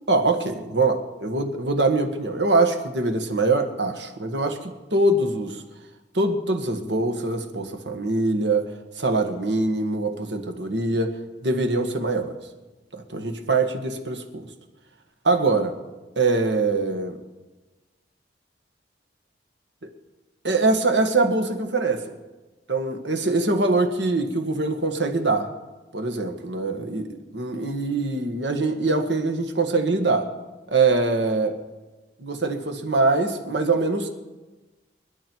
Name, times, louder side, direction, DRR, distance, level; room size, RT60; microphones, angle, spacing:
voice 1, 0.1-5.6 6.1-8.7 9.0-11.2 11.4-12.4 12.9-14.5 15.2-15.7 16.1-17.2 20.4-22.1 22.7-25.5 25.9-30.3 30.7-31.6 32.2-34.1, right 3 dB, 75° right, 6 dB, 1.8 m, -23 dB
26.5 x 11.5 x 4.7 m, 1.2 s
head